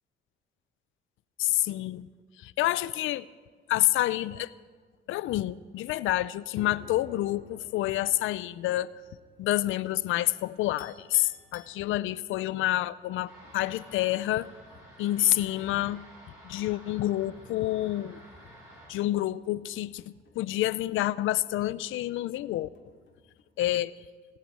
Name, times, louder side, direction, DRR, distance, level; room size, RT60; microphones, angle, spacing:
voice 1, 1.4-2.1 2.4-3.2 3.7-4.5 5.1-8.9 9.4-14.5 15.0-16.0 16.4-18.2 18.9-20.0 20.4-22.7 23.6-23.9, left 15 dB, 85° left, 19 dB, 0.5 m, -28 dB
sound 1, 6.5-23.4, left 4 dB, 65° left, 2.5 m, -57 dB
Chink clink, 10.8-12.4, left 7 dB, 50° left, 1.7 m, -52 dB
sound 2, 13.3-18.9, equal, 15° right, 6.7 m, -52 dB
18.5 x 8.3 x 8.7 m, 1.5 s
cardioid pair, 90°, 20 cm